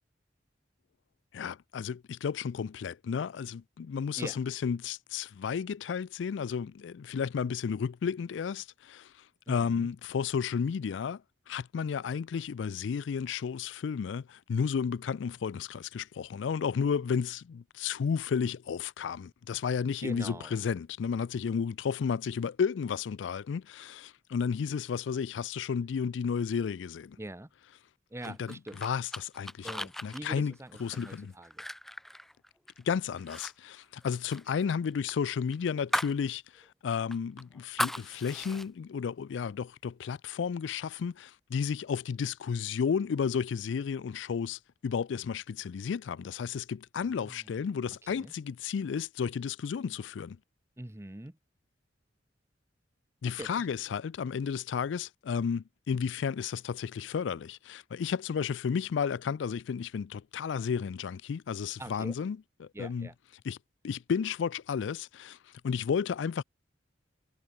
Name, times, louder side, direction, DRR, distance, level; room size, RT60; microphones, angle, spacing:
voice 1, 1.3-9.1 9.5-11.2 11.5-27.2 28.2-31.3 32.8-50.4 53.2-63.1 63.4-63.6 63.8-65.4 65.6-66.4, left 6 dB, 85° left, 0.4 m, -32 dB
voice 2, 9.5-9.9 20.0-20.6 27.2-27.5 28.1-28.8 29.6-31.6 47.0-47.5 48.0-48.3 50.8-51.4 53.2-53.7 61.8-62.1 62.7-63.1, right 1 dB, 15° right, 0.8 m, -43 dB
sound 1, 28.2-32.8 33.2-33.5 33.8-36.2 36.6-36.7 37.1-38.7, left 1 dB, ahead, 0.3 m, -37 dB
head